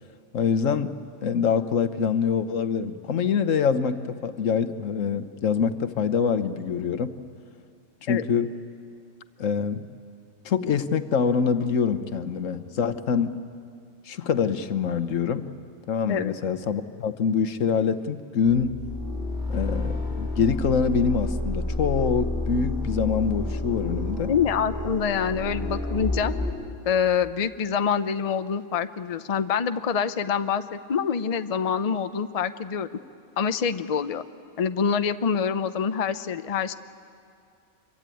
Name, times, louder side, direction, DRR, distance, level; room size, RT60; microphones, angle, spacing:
voice 1, 0.3-0.9 1.2-7.1 8.0-8.5 9.4-9.8 10.4-13.3 14.1-15.5 15.9-18.7 19.5-24.3, left 6 dB, 80° left, 11 dB, 1.4 m, -25 dB
sound 1, 18.4-26.5, left 2 dB, 5° right, 7.6 m, -30 dB
voice 2, 24.3-26.3 26.9-33.0 33.4-34.2 34.6-36.7, left 7 dB, 40° left, 10 dB, 0.6 m, -26 dB
26.0 x 23.5 x 9.1 m, 2.4 s
omnidirectional pair, 1.3 m